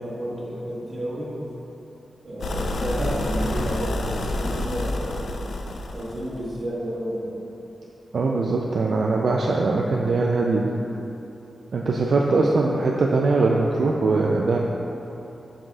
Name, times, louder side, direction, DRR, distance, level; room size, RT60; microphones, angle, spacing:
voice 1, 0.0-1.4 2.2-5.2 5.9-7.3, right 1 dB, 35° right, -7 dB, 1.4 m, -31 dB
sound 1, 2.4-6.4, left 2 dB, 85° left, 0.4 m, -28 dB
voice 2, 8.1-10.7 11.7-14.6, right 3 dB, 65° right, -1 dB, 0.3 m, -21 dB
7.6 x 5.7 x 2.3 m, 3.0 s
wide cardioid pair, 150°, 0 cm